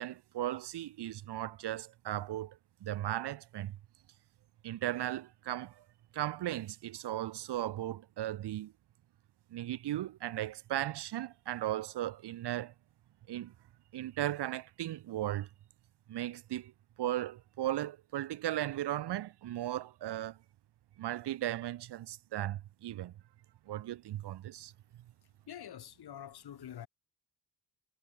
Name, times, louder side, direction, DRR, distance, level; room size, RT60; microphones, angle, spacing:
voice 1, 0.0-3.8 4.6-5.8 6.1-8.7 9.5-12.7 13.3-13.5 13.9-15.5 16.1-16.7 17.0-20.4 21.0-23.1 23.7-24.7, right 13 dB, 90° right, 1.4 m, -36 dB
voice 2, 25.5-26.9, left 10 dB, 70° left, 6.2 m, -46 dB
cardioid pair, 130°, 39 cm